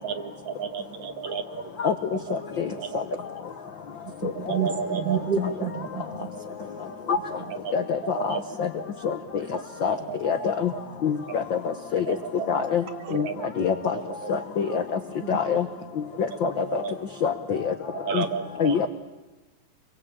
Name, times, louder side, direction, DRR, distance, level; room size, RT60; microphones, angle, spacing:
voice 1, 0.0-1.7 2.3-2.4 2.8-3.0 4.5-5.2 6.4-7.0 7.5-8.9 10.1-10.8 11.3-11.4 12.1-12.6 13.0-13.5 13.9-14.3 16.4-17.0 18.0-18.8, right 6 dB, 65° right, 7 dB, 2.7 m, -33 dB
voice 2, 4.0-6.3 15.2-15.3, right 8 dB, 35° right, 4 dB, 2.1 m, -29 dB
voice 3, 7.7-8.7 9.0-9.1 9.8-9.9 10.2-10.7 11.0-11.6 11.9-12.0 12.5-12.8 13.1-13.3 13.6-13.9 14.3-14.8 15.3-15.6 16.4-16.8 17.2-17.7 18.1-18.2 18.6-18.9, left 7 dB, 80° left, 8 dB, 1.0 m, -25 dB
27.0 x 22.0 x 8.6 m, 1.1 s
omnidirectional pair, 3.7 m